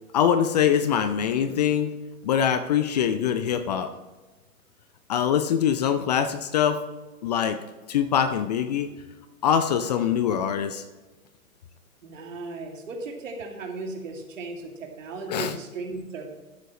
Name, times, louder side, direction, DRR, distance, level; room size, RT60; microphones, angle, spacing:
voice 1, 0.1-1.9 2.2-3.9 5.1-6.8 7.2-7.6 7.9-8.9 9.4-10.8 15.3-15.5, left 8 dB, 30° left, 10 dB, 0.5 m, -23 dB
voice 2, 12.0-16.4, right 3 dB, 60° right, 1 dB, 2.6 m, -36 dB
13.0 x 8.2 x 3.1 m, 1.2 s
figure-of-eight pair, 115°, 43 cm